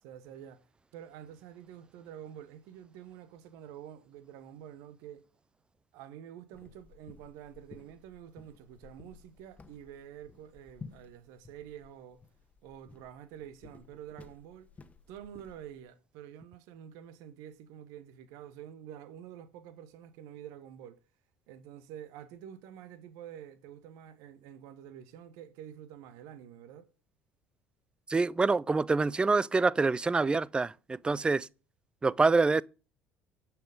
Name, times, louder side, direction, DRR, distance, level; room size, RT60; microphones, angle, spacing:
voice 1, 0.0-0.6 0.9-5.2 5.9-12.2 12.6-14.7 15.1-21.0 21.5-26.9, right 10 dB, 60° right, 1.0 m, -48 dB
sound 1, 6.5-15.8, left 4 dB, 20° left, 1.2 m, -54 dB
voice 2, 28.1-31.5 32.0-32.6, right 3 dB, 15° right, 0.4 m, -26 dB
10.0 x 6.0 x 5.1 m
figure-of-eight pair, 60°, 6 cm